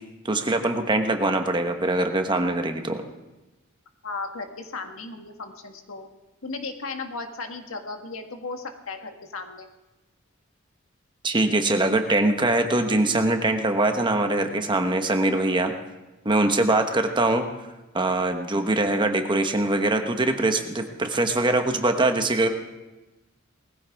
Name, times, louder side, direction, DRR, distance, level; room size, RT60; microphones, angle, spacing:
voice 1, 0.2-3.0 11.2-15.7 16.2-17.4 17.9-22.5, right 2 dB, 25° right, 5 dB, 1.2 m, -23 dB
voice 2, 4.0-6.1 6.4-9.7, left 3 dB, 85° left, 5 dB, 1.6 m, -35 dB
20.0 x 15.0 x 3.5 m, 1.1 s
head